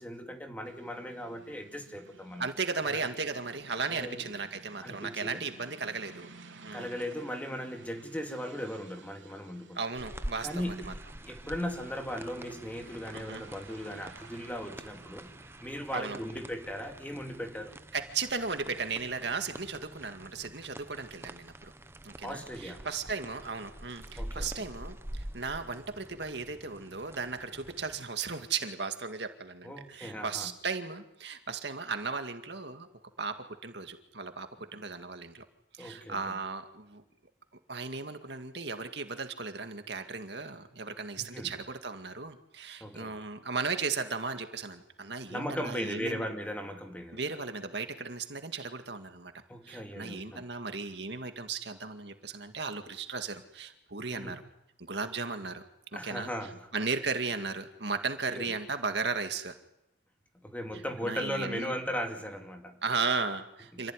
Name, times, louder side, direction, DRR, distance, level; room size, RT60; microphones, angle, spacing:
voice 1, 0.0-2.5 2.8-3.0 3.9-4.3 4.8-5.4 6.7-9.8 10.4-15.3 15.6-17.8 22.2-22.9 24.2-24.7 29.6-30.5 35.8-36.4 41.2-41.5 42.8-43.2 45.3-47.2 49.5-50.4 54.1-54.4 55.9-56.7 58.3-58.5 60.4-62.8 63.7-63.9, equal, 10° left, 4 dB, 2.7 m, -38 dB
sound 1, 0.6-17.1, right 3 dB, 85° right, 3.5 m, -55 dB
voice 2, 2.4-6.3 6.6-7.0 9.7-10.9 13.1-13.4 15.9-16.2 17.9-21.7 22.0-32.9 33.2-35.4 35.7-37.0 37.7-46.2 47.1-49.3 49.6-54.4 54.8-55.6 55.9-56.3 56.7-59.5 61.0-61.7 62.8-63.9, right 4 dB, 65° right, 7 dB, 2.2 m, -36 dB
sound 2, 9.9-28.1, right 1 dB, 15° right, 0.9 m, -46 dB
27.5 x 17.0 x 10.0 m, 0.85 s
head